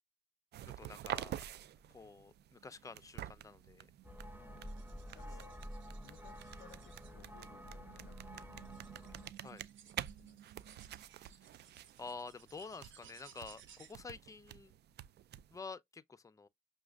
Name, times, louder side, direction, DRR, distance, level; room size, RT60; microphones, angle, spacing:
sound 1, 0.5-15.6, right 12 dB, 55° right, 0.4 m, -49 dB
voice 1, 0.6-1.5 1.9-3.9 9.4-9.6 12.0-14.7 15.5-16.5, left 4 dB, 15° left, 0.6 m, -49 dB
sound 2, 4.0-9.3, equal, 10° right, 0.8 m, -50 dB
voice 2, 4.4-4.8 5.1-5.6 6.0-9.5 9.9-10.8, left 12 dB, 65° left, 0.5 m, -62 dB
sound 3, 4.7-7.1 8.0-8.1 8.7-13.9, right 8 dB, 75° right, 1.1 m, -62 dB
6.0 x 2.4 x 2.3 m
cardioid pair, 90°, 20 cm